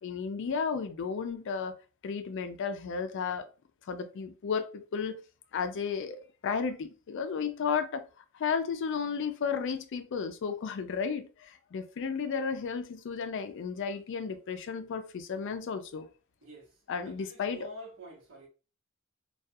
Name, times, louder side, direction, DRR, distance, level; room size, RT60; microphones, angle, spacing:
voice 1, 0.0-1.7 2.0-3.5 3.9-5.2 5.5-8.1 8.3-16.1 16.9-17.7, left 6 dB, 60° left, 0.4 m, -33 dB
voice 2, 16.4-18.5, equal, 75° right, 0.9 m, -48 dB
2.3 x 2.3 x 2.6 m
head